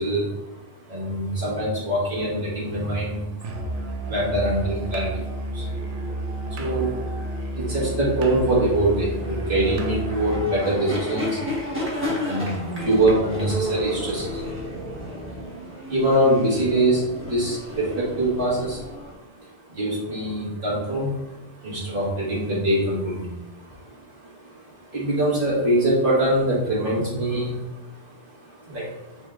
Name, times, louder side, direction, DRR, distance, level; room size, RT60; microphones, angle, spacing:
voice 1, 0.0-29.3, right 1 dB, 45° right, -6 dB, 1.6 m, -25 dB
Musical instrument, 3.4-10.5, right 1 dB, 70° right, 0.9 m, -31 dB
sound 1, 5.5-19.1, equal, 10° right, 1.1 m, -33 dB
4.6 x 4.2 x 2.4 m, 0.94 s
omnidirectional pair, 1.3 m